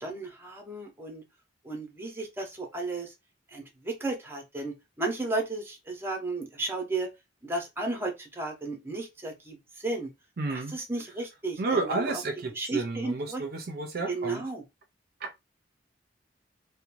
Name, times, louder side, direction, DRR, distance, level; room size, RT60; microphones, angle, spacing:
voice 1, 0.0-1.2 1.6-3.1 3.5-7.1 7.4-10.1 10.5-12.2 12.5-13.4 14.1-14.6, right 2 dB, 15° right, 0.7 m, -34 dB
voice 2, 10.4-10.7 11.6-14.4 15.2-15.4, right 3 dB, 55° right, 0.5 m, -31 dB
2.5 x 2.1 x 2.9 m
head